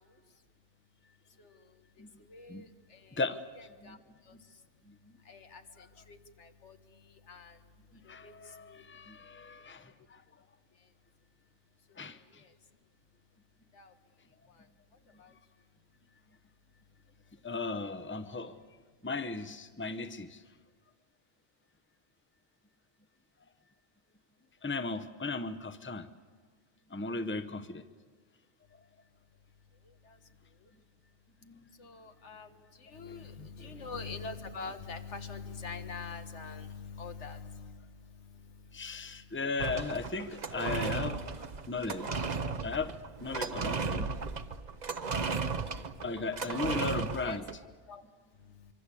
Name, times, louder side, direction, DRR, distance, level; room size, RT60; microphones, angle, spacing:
voice 1, 3.6-4.0 5.3-5.6 6.1-6.2 6.6-6.7 7.3-7.5 8.2-8.3 32.0-32.5 32.9-33.3 33.6-37.7 46.5-46.8 47.2-47.4 47.9-48.0, left 4 dB, 85° left, 8 dB, 1.8 m, -42 dB
voice 2, 8.1-9.8 12.0-12.2 17.4-18.6 19.0-20.4 24.6-26.1 26.9-27.8 31.4-31.7 33.4-33.7 38.7-41.2 41.7-42.2 42.6-42.9 43.2-44.1 46.0-47.4, left 3 dB, 10° left, 11 dB, 0.8 m, -36 dB
sound 1, 39.6-47.5, right 4 dB, 40° right, 1.0 m, -35 dB
25.0 x 24.5 x 8.4 m, 1.5 s
omnidirectional pair, 1.2 m